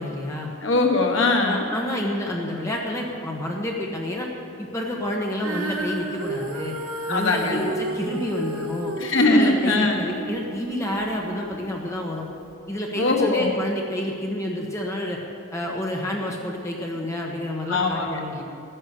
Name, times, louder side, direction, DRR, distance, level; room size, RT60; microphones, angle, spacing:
voice 1, 0.0-0.5 1.4-4.3 4.6-6.7 7.1-8.9 9.3-12.3 12.7-15.2 15.5-18.4, left 1 dB, 15° left, -1 dB, 1.3 m, -29 dB
voice 2, 0.6-1.6 7.1-7.6 9.0-10.0 13.0-13.5 17.7-18.2, left 2 dB, 70° left, 2 dB, 1.4 m, -21 dB
Female singing, 5.4-11.7 12.4-12.5, right 1 dB, 80° right, 1.7 m, -32 dB
14.0 x 10.0 x 6.8 m, 2.4 s
head